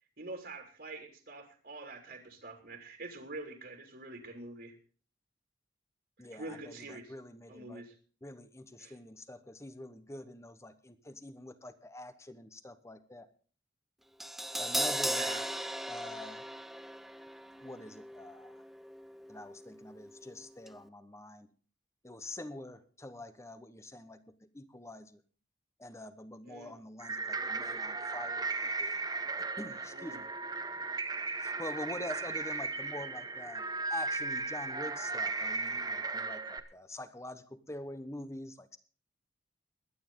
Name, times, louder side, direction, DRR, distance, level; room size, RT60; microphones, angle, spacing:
voice 1, 0.2-4.8 6.2-7.1 7.5-7.9 8.8-9.0 15.1-15.5 26.4-26.7 29.9-30.2, right 2 dB, 60° right, 3 dB, 2.7 m, -46 dB
voice 2, 6.2-7.8 8.2-13.3 14.6-15.4 15.9-16.4 17.6-18.5 19.3-21.5 22.0-24.2 24.5-25.2 25.8-29.0 29.6-30.2 31.4-33.6 33.9-38.8, left 1 dB, 15° left, 11 dB, 1.1 m, -45 dB
Crash cymbal, 14.2-20.4 20.6-20.8, right 1 dB, ahead, 0.6 m, -38 dB
sound 1, 27.0-36.6, right 3 dB, 25° right, 1.1 m, -36 dB
22.0 x 9.6 x 3.8 m, 0.40 s
head